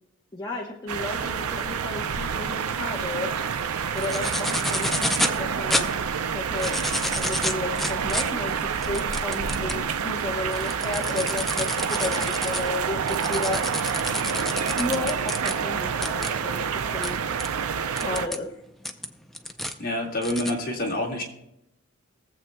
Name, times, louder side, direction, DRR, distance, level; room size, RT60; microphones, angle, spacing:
voice 1, 0.3-3.3 3.9-5.9 6.3-13.8 14.5-17.2 17.9-18.6, left 2 dB, 20° left, -2 dB, 1.0 m, -33 dB
sound 1, 0.9-18.3, right 6 dB, 90° right, 0.5 m, -28 dB
sound 2, 4.0-5.4 5.7-5.8 6.4-9.8 10.3-15.5 16.0-16.3 17.0-17.1 17.4-17.5 18.0-18.4 18.8-19.7 20.2-20.5, left 1 dB, ahead, 0.5 m, -29 dB
voice 2, 19.8-21.2, left 1 dB, 40° left, -1 dB, 1.9 m, -27 dB
22.0 x 7.6 x 2.3 m, 0.84 s
head